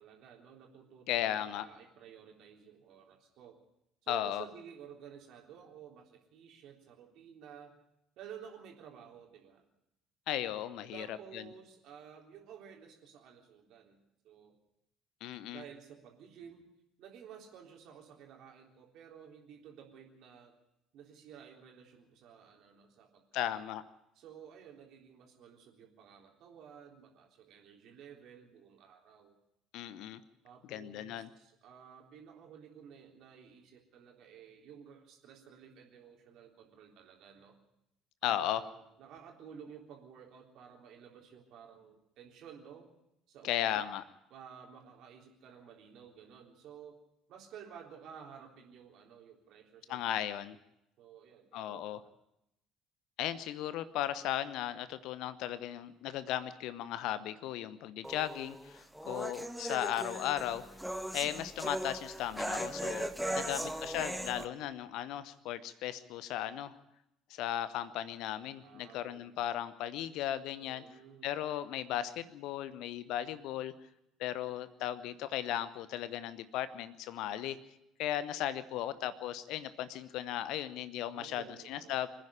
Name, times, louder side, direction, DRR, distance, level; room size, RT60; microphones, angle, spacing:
voice 1, 0.0-3.6 4.0-7.7 8.2-9.6 10.9-14.6 15.4-16.7 17.0-20.5 20.9-23.6 24.2-29.3 30.4-37.6 38.2-42.9 43.3-43.9 44.3-47.0 47.3-50.5 51.0-52.1 62.9-63.7 68.6-69.3 70.6-71.3 81.0-82.0, right 8 dB, 55° right, 1 dB, 3.7 m, -53 dB
voice 2, 1.1-1.7 4.1-4.4 10.3-11.4 15.2-15.6 23.3-23.8 29.7-30.2 30.7-31.3 38.2-38.6 43.4-44.0 49.9-50.6 51.5-52.0 53.2-60.6 61.1-66.7 67.3-70.8 71.2-73.7 74.2-77.6 78.0-82.1, left 12 dB, 60° left, 15 dB, 1.0 m, -36 dB
sound 1, 58.0-64.5, right 1 dB, 5° right, 1.6 m, -38 dB
25.5 x 10.5 x 10.0 m, 0.83 s
figure-of-eight pair, 55°, 0 cm